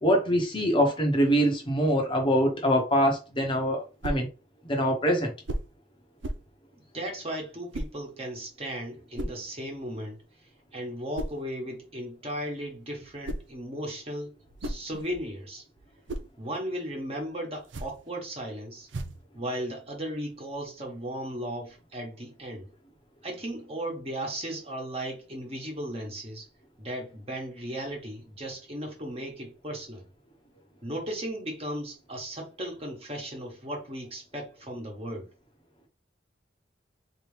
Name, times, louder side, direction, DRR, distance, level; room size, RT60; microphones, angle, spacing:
voice 1, 0.0-4.3 4.6-5.3, equal, 25° left, 0.9 m, -24 dB
sound 1, 4.0-4.3 5.4-5.8 6.2-6.5 7.7-8.0 9.2-9.4 11.1-11.4 13.0-13.6 14.3-15.3 15.8-16.3 17.6-18.1 18.9-19.3, right 1 dB, 85° right, 0.6 m, -36 dB
voice 2, 6.7-10.2 10.7-15.6 16.4-18.9 19.3-22.7 23.2-26.5 26.8-30.0 30.8-35.3, right 1 dB, 35° right, 1.3 m, -36 dB
4.0 x 3.0 x 3.3 m
head